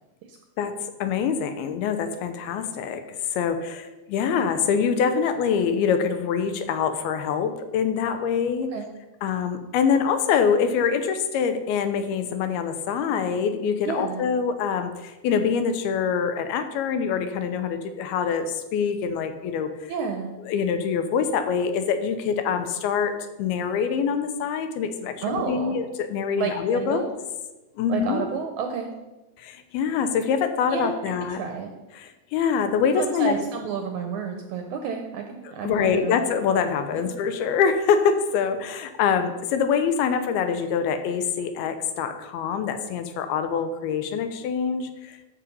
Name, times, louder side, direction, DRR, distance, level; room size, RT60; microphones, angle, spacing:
voice 1, 0.6-3.0 3.3-8.7 9.2-19.7 20.5-27.0 27.8-28.3 29.4-31.4 32.0-33.4 35.6-45.3, left 6 dB, 85° left, 9 dB, 2.8 m, -25 dB
voice 2, 13.9-14.3 19.9-20.3 25.2-25.8 26.4-27.1 27.9-28.9 30.7-31.7 32.9-36.1 36.9-37.1, right 6 dB, 75° right, 4 dB, 1.8 m, -30 dB
13.5 x 5.7 x 5.5 m, 1.1 s
omnidirectional pair, 4.4 m